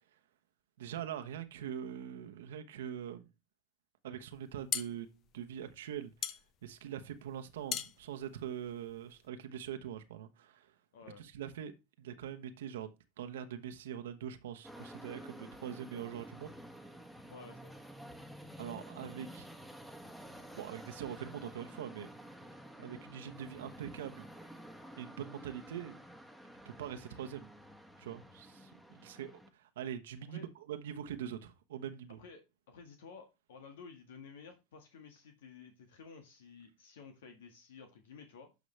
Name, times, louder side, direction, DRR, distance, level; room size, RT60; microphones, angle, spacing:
voice 1, 0.8-3.3 4.0-6.3 6.6-10.7 11.2-11.7 12.0-16.5 18.6-19.5 20.5-22.1 22.8-24.3 25.0-26.0 26.6-27.5 28.0-32.2, right 9 dB, 80° right, 1.0 m, -43 dB
sound 1, 4.3-9.3, left 10 dB, 45° left, 0.8 m, -41 dB
voice 2, 10.9-11.2 17.3-17.7 30.3-30.5 32.2-38.5, left 5 dB, 80° left, 1.8 m, -53 dB
sound 2, 14.6-29.5, equal, 5° left, 1.5 m, -51 dB
11.5 x 5.2 x 3.3 m
hypercardioid pair, 100°, 0 cm